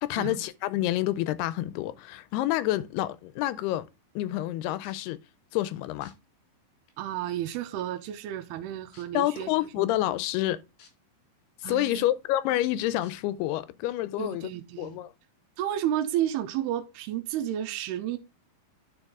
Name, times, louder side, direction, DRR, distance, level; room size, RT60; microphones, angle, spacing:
voice 1, 0.0-3.9 4.2-5.2 5.5-6.1 9.1-10.6 11.6-14.5 14.8-15.1, left 14 dB, 90° left, 2.6 m, -28 dB
sound 1, 4.8-5.1 6.0-6.1 6.9-7.0 7.5-7.8 8.9-9.0 10.8-10.9 11.4-11.5 13.0-13.1 13.9-14.0, left 6 dB, 70° left, 3.9 m, -55 dB
voice 2, 7.0-9.9 11.6-12.0 14.2-15.0 15.6-18.2, right 11 dB, 90° right, 2.7 m, -32 dB
9.8 x 4.8 x 3.6 m
omnidirectional pair, 4.6 m